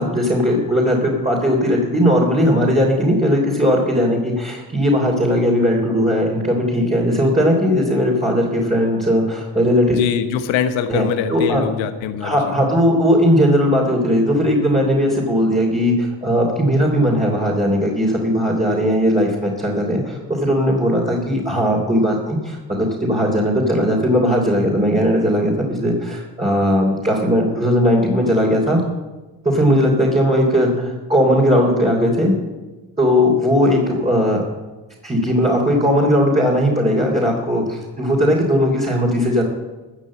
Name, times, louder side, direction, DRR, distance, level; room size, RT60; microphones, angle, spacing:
voice 1, 0.0-10.0 10.9-11.6 12.2-28.8 29.5-32.3 33.0-34.4 35.0-39.4, equal, 15° right, -3 dB, 3.4 m, -18 dB
voice 2, 9.9-12.3, left 8 dB, 90° left, 10 dB, 1.2 m, -22 dB
14.5 x 6.6 x 8.6 m, 1.2 s
supercardioid pair, 65°, 44 cm